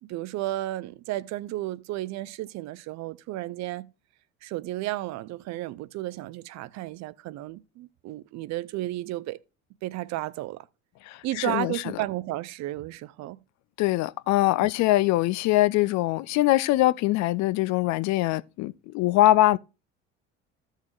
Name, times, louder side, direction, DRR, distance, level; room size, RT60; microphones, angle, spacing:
voice 1, 0.0-3.9 4.4-9.4 9.8-10.7 11.2-13.4 14.6-14.7, right 16 dB, 50° right, 0.6 m, -33 dB
voice 2, 11.1-11.7 13.8-19.6, left 16 dB, 50° left, 0.5 m, -23 dB
14.5 x 6.5 x 2.4 m
figure-of-eight pair, 60°, 37 cm